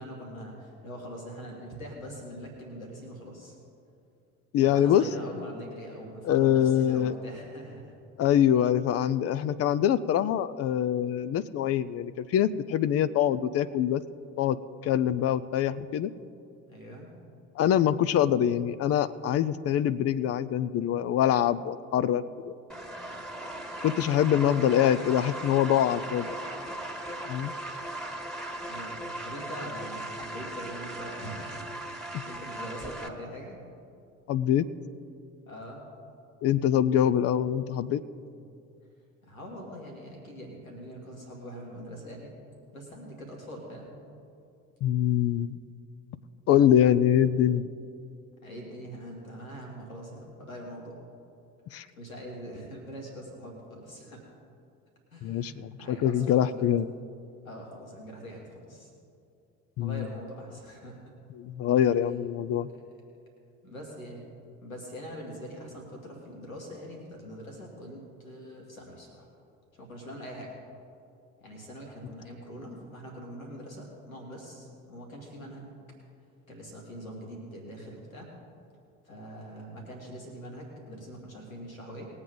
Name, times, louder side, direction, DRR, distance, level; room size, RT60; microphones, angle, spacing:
voice 1, 0.0-3.5 4.6-8.0 16.7-17.1 28.6-33.6 35.5-35.8 38.3-38.5 39.2-42.3 42.7-43.9 48.4-51.0 51.7-54.3 55.1-56.6 57.4-58.9 59.8-61.1 62.7-62.8 63.6-64.2 64.6-69.3 69.7-70.6 71.4-75.7 76.5-78.3 79.0-82.1, equal, 85° left, -1 dB, 2.2 m, -43 dB
voice 2, 4.5-5.1 6.2-7.1 8.2-14.0 14.4-14.6 14.8-16.1 17.6-22.5 23.8-26.3 27.3-27.5 34.3-34.7 36.4-38.0 44.8-45.5 46.5-47.7 51.7-51.9 55.2-56.9 59.8-60.1 61.4-62.7, left 10 dB, 35° left, 15 dB, 0.5 m, -24 dB
sound 1, 22.7-33.1, right 1 dB, ahead, 1.7 m, -38 dB
20.5 x 8.0 x 3.8 m, 2.5 s
figure-of-eight pair, 55°, 40 cm